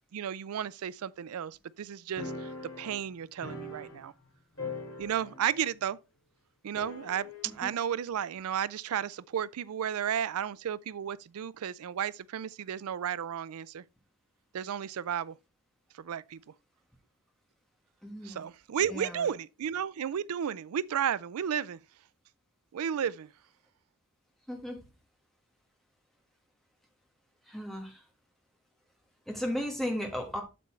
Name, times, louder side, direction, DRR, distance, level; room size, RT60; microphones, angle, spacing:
voice 1, 0.1-2.5 2.8-4.1 5.0-6.0 6.6-13.8 14.5-15.4 15.9-16.4 18.2-21.8 22.7-23.3, right 9 dB, 80° right, 0.4 m, -33 dB
sound 1, 2.2-4.3 4.6-5.6 5.8-5.9 6.8-7.6, left 3 dB, 60° left, 2.4 m, -41 dB
voice 2, 18.0-18.4 18.8-19.3 24.5-24.8 27.4-28.0 29.3-30.4, equal, ahead, 1.5 m, -35 dB
8.4 x 6.8 x 3.2 m
head